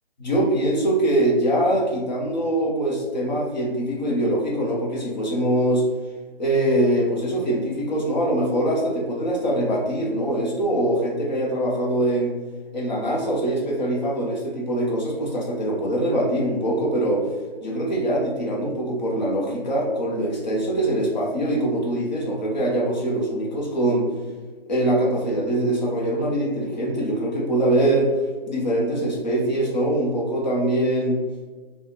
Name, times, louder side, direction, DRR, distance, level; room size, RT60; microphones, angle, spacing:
voice 1, 0.2-5.8 6.4-12.3 12.7-17.3 17.6-24.1 24.7-28.1 28.5-31.2, right 1 dB, 45° left, -2 dB, 1.1 m, -23 dB
3.6 x 2.4 x 4.1 m, 1.4 s
figure-of-eight pair, 145°, 30 cm